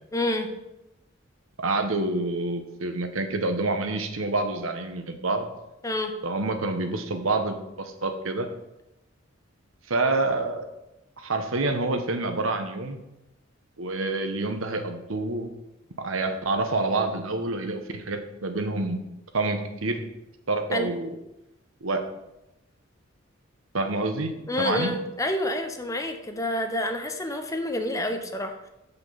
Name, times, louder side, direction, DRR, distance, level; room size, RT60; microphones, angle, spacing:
voice 1, 0.1-0.5 5.8-6.1 20.7-20.9 24.5-28.7, left 1 dB, 15° left, 5 dB, 0.8 m, -28 dB
voice 2, 1.6-5.5 6.2-8.5 9.9-10.7 11.2-13.0 13.8-15.5 16.0-19.0 19.3-20.0 20.5-21.1 21.8-22.0 23.7-24.3 24.6-25.0, right 2 dB, 80° right, 7 dB, 1.0 m, -27 dB
6.0 x 5.8 x 7.0 m, 0.92 s
head